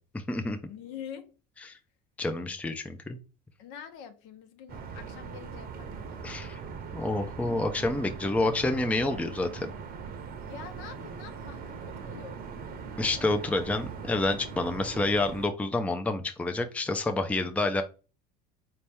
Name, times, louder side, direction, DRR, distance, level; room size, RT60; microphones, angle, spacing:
voice 1, 0.1-0.6 1.6-1.8 2.2-3.2 6.2-6.6 6.9-9.7 13.0-17.8, left 2 dB, 5° left, 0.5 m, -28 dB
voice 2, 0.7-1.3 3.6-6.4 10.4-12.4, left 8 dB, 70° left, 1.0 m, -45 dB
sound 1, 4.7-15.5, right 6 dB, 45° right, 0.8 m, -41 dB
4.4 x 2.8 x 3.4 m
supercardioid pair, 95°, 21 cm